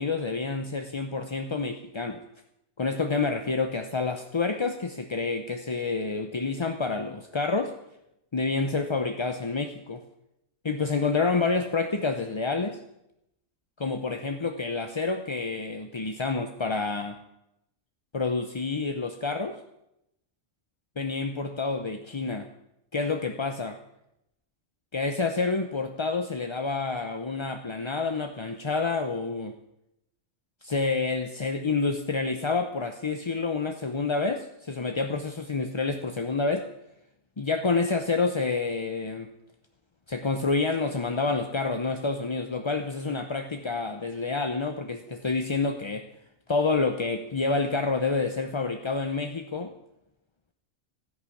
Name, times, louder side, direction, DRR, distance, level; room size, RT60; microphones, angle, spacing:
voice 1, 0.0-2.2 2.8-7.7 8.3-10.0 10.6-12.8 13.8-17.2 18.1-19.6 21.0-22.5 22.9-23.8 24.9-29.6 30.6-36.7 37.4-39.3 40.1-46.1 46.5-49.7, left 4 dB, 30° left, 6 dB, 0.6 m, -28 dB
13.0 x 11.5 x 8.4 m, 0.85 s
omnidirectional pair, 1.4 m